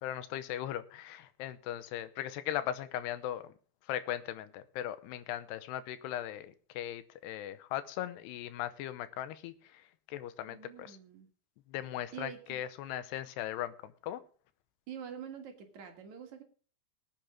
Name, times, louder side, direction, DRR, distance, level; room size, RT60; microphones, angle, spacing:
voice 1, 0.0-3.5 3.9-11.0 11.7-14.2, left 12 dB, 85° left, 13 dB, 2.9 m, -38 dB
voice 2, 10.5-11.3 12.1-12.6 14.9-16.4, right 8 dB, 55° right, 4 dB, 2.6 m, -46 dB
19.0 x 8.8 x 3.7 m, 0.40 s
omnidirectional pair, 4.7 m